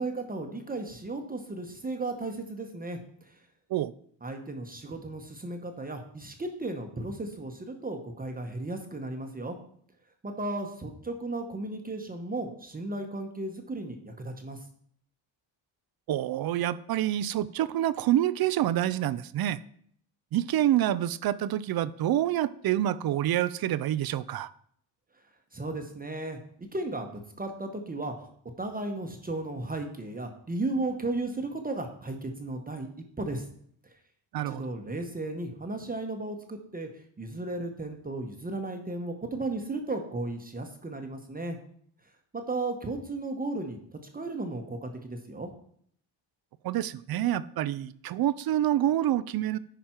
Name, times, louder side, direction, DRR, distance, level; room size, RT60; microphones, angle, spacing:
voice 1, 0.0-3.4 4.2-9.6 10.2-14.6 25.5-28.3 28.6-32.9 33.2-33.4 33.8-33.9 34.5-36.9 37.2-41.6 42.3-43.8 44.1-45.5, right 2 dB, 20° right, 4 dB, 0.9 m, -35 dB
voice 2, 16.1-19.6 20.3-24.5 34.3-34.6 46.6-49.6, right 12 dB, 55° right, 17 dB, 0.5 m, -27 dB
10.0 x 5.1 x 4.4 m, 0.63 s
cardioid pair, 135°, 46 cm